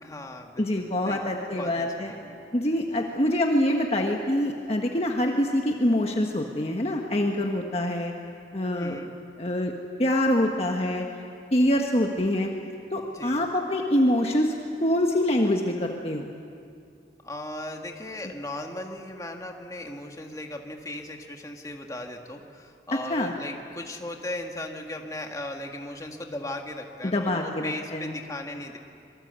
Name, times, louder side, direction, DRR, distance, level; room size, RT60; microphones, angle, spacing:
voice 1, 0.0-1.2 1.5-2.4 8.7-9.1 13.1-13.4 17.2-28.8, left 1 dB, 20° left, 2 dB, 1.9 m, -37 dB
voice 2, 0.6-2.1 2.5-8.1 8.5-9.0 9.4-9.7 10.0-11.0 11.5-12.5 12.9-14.5 14.8-16.3 23.1-23.3 27.0-28.1, left 1 dB, 35° left, 2 dB, 1.4 m, -25 dB
26.0 x 24.0 x 8.2 m, 2.4 s
head